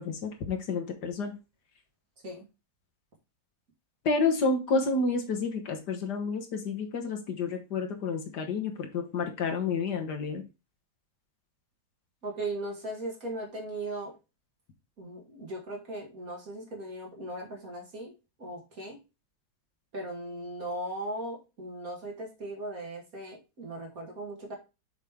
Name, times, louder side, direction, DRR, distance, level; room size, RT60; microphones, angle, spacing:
voice 1, 0.0-1.3 4.1-10.4, left 4 dB, 65° left, 4 dB, 1.7 m, -30 dB
voice 2, 12.2-14.1 15.0-18.1 18.4-19.0 19.9-24.5, right 1 dB, 50° right, -1 dB, 2.5 m, -38 dB
6.6 x 5.3 x 3.6 m, 0.28 s
omnidirectional pair, 1.9 m